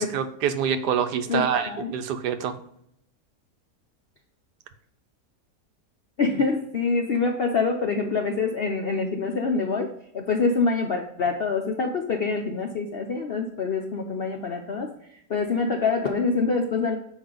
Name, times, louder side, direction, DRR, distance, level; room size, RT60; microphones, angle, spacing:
voice 1, 0.0-2.5, right 8 dB, 85° right, 8 dB, 1.3 m, -26 dB
voice 2, 1.3-1.9 6.2-9.9 10.1-14.9 15.3-17.0, left 4 dB, 65° left, 2 dB, 0.5 m, -25 dB
7.1 x 4.7 x 3.8 m, 0.72 s
omnidirectional pair, 1.7 m